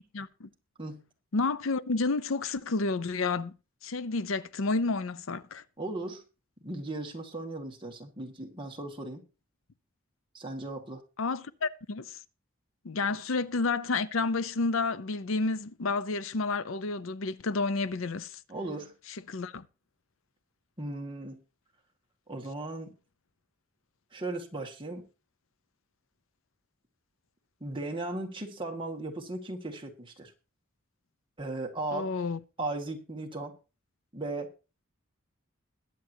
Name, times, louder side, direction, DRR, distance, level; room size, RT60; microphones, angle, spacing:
voice 1, 0.1-0.5 1.3-3.5 3.8-5.6 11.2-12.2 12.8-18.4 19.3-19.7 31.9-32.4, left 3 dB, 80° left, 0.6 m, -30 dB
voice 2, 5.8-6.2 6.6-9.2 10.3-11.0 18.5-18.9 20.8-21.4 22.3-22.9 24.1-25.1 27.6-30.3 31.4-32.1 32.6-33.6 34.1-34.5, right 2 dB, 25° right, 1.8 m, -37 dB
21.5 x 7.7 x 2.8 m
head